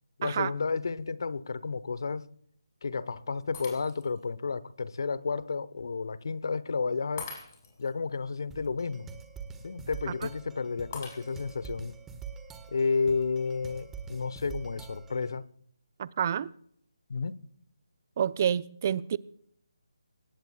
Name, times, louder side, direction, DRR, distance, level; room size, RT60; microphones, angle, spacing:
voice 1, 0.2-2.3 2.8-7.3 7.8-9.1 9.6-12.0 12.7-15.4 17.1-17.4, left 4 dB, 55° left, 0.9 m, -31 dB
Shatter, 3.5-4.2 4.8-4.9 7.2-7.9 10.9-11.7, left 5 dB, 35° left, 6.6 m, -43 dB
sound 1, 8.5-15.4, right 6 dB, 10° right, 1.4 m, -45 dB
voice 2, 16.0-16.5 18.2-19.2, right 8 dB, 35° right, 0.6 m, -28 dB
25.5 x 18.5 x 2.4 m
figure-of-eight pair, 150°, 2 cm